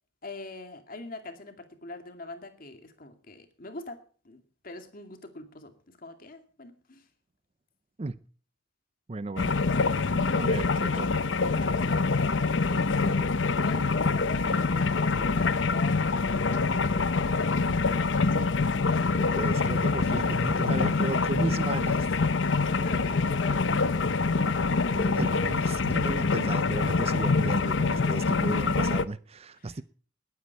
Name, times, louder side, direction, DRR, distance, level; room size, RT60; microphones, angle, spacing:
voice 1, 0.2-7.0 11.6-12.0 12.4-13.0 13.6-17.7 22.7-24.1 29.6-29.8, left 2 dB, 50° left, 2.3 m, -43 dB
voice 2, 9.1-9.6 10.3-11.3 19.2-22.1 24.9-29.8, right 2 dB, 35° right, 0.5 m, -35 dB
sound 1, 9.4-29.0, left 4 dB, 70° left, 0.7 m, -25 dB
20.0 x 9.4 x 4.7 m
head